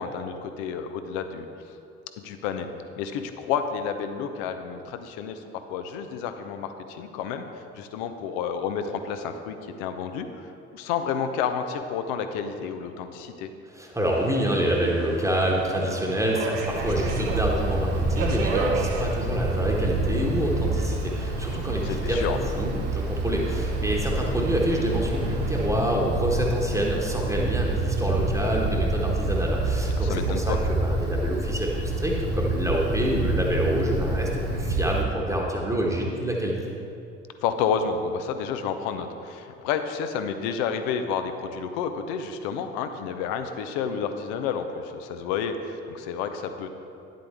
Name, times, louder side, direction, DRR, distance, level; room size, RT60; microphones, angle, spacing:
voice 1, 0.0-1.5 2.2-2.7 3.0-5.4 5.7-10.3 10.7-13.5 21.8-22.4 30.0-30.6 37.4-46.7, left 7 dB, 60° left, 8 dB, 0.7 m, -30 dB
voice 2, 13.7-36.5, right 1 dB, 10° right, -2 dB, 1.3 m, -27 dB
Subway metro underground, 14.0-25.7, right 3 dB, 60° right, 1.1 m, -35 dB
Wind, 16.6-35.0, right 2 dB, 45° right, 1.5 m, -27 dB
10.0 x 7.6 x 3.6 m, 2.7 s
figure-of-eight pair, 55°, 35 cm